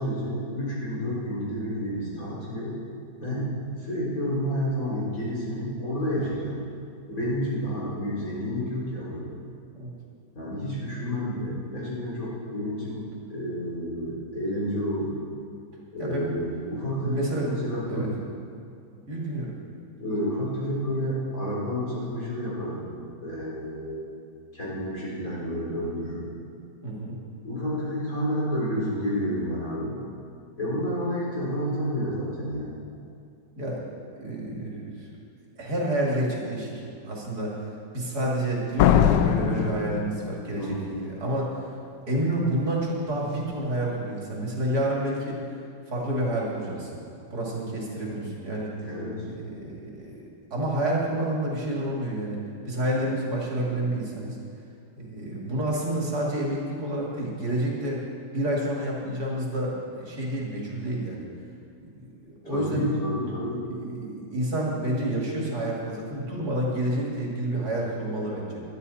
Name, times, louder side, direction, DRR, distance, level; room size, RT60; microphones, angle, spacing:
voice 1, 0.0-2.7 3.2-3.5 3.8-6.6 7.1-9.3 10.3-13.0 13.3-15.1 15.9-18.1 19.9-22.9 23.2-24.0 24.5-26.3 27.4-30.0 30.6-32.8 40.6-41.0 48.8-49.2 62.4-63.6, equal, 50° left, -7 dB, 4.3 m, -30 dB
voice 2, 16.0-16.3 16.9-17.5 17.9-18.1 19.1-19.5 26.8-27.2 33.6-33.8 34.2-35.1 35.6-37.5 37.9-41.5 42.1-45.4 45.9-47.0 47.3-48.7 49.3-50.2 50.5-52.4 52.7-54.4 55.0-58.0 58.3-61.3 61.9-62.9 63.7-68.6, right 1 dB, 60° right, -3 dB, 2.9 m, -29 dB
Slam, 38.8-40.7, left 10 dB, 80° left, 1.2 m, -21 dB
20.0 x 12.0 x 4.2 m, 2.5 s
omnidirectional pair, 1.9 m